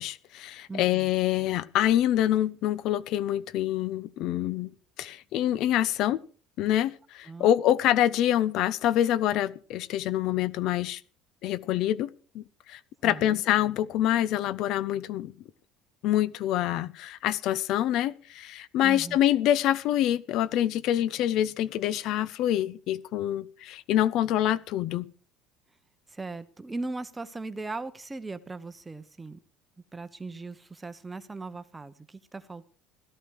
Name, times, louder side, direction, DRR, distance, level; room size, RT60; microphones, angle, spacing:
voice 1, 0.0-4.7 5.0-6.2 6.6-11.0 11.4-12.1 12.3-15.3 16.0-25.1, left 12 dB, 45° left, 0.8 m, -26 dB
voice 2, 0.7-1.1 7.3-7.6 13.0-13.4 18.8-19.2 26.1-29.4 29.9-32.7, right 3 dB, 10° right, 0.9 m, -38 dB
17.0 x 13.5 x 4.8 m
cardioid pair, 175°, 0 cm